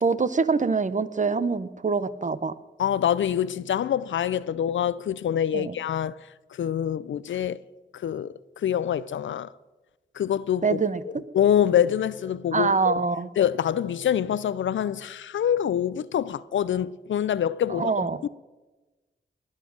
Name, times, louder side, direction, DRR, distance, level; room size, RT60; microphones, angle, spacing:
voice 1, 0.0-2.5 5.5-5.7 10.6-11.0 12.5-13.3 17.7-18.2, right 4 dB, 40° right, 0.8 m, -24 dB
voice 2, 2.8-6.2 6.5-7.6 7.9-9.5 10.2-10.8 11.3-12.9 13.4-17.9 18.2-18.3, left 9 dB, 80° left, 0.5 m, -25 dB
20.0 x 7.4 x 6.2 m
cardioid pair, 55°, 20 cm